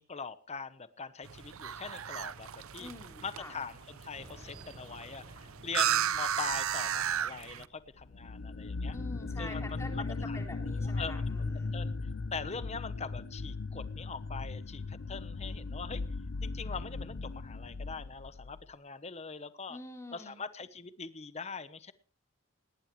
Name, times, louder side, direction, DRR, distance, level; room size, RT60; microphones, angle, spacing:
voice 1, 0.0-2.9 3.2-9.0 9.4-10.4 10.8-11.9 12.3-16.0 16.4-19.8 20.1-21.9, left 5 dB, 30° left, 14 dB, 0.9 m, -42 dB
sound 1, 1.2-7.7, right 9 dB, 85° right, 0.7 m, -35 dB
voice 2, 2.8-3.5 8.9-11.7 19.7-20.4, left 2 dB, 15° left, 3 dB, 3.7 m, -46 dB
sound 2, 4.1-9.0, equal, 30° right, 4.8 m, -57 dB
sound 3, 8.0-18.7, left 3 dB, 65° left, 0.6 m, -37 dB
18.5 x 18.5 x 3.2 m, 0.39 s
head